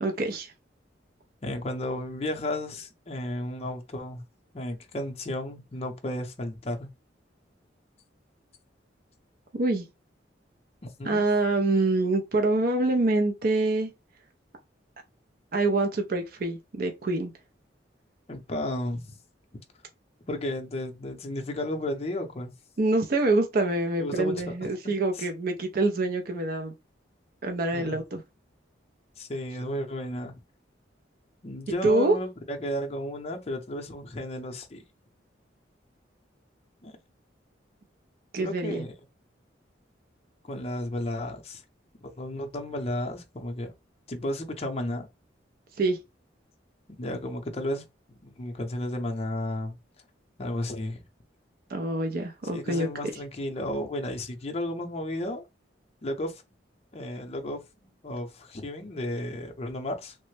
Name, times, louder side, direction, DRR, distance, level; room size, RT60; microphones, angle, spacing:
voice 1, 0.0-0.5 9.6-9.9 11.0-13.9 15.5-17.3 22.8-26.7 27.4-28.2 31.8-32.2 38.3-38.9 45.8-46.0 51.7-52.9, right 2 dB, 50° right, 0.5 m, -25 dB
voice 2, 1.4-4.2 4.5-6.9 11.0-11.2 18.3-19.2 20.3-22.5 24.0-24.7 25.1-25.3 27.7-28.0 29.2-30.4 31.4-34.8 36.8-36.9 38.4-38.9 40.4-41.6 42.0-43.7 44.1-45.1 47.0-49.8 50.4-51.0 52.5-55.4 56.0-56.4 56.9-60.2, left 1 dB, 35° left, 0.5 m, -33 dB
3.2 x 2.0 x 3.1 m
head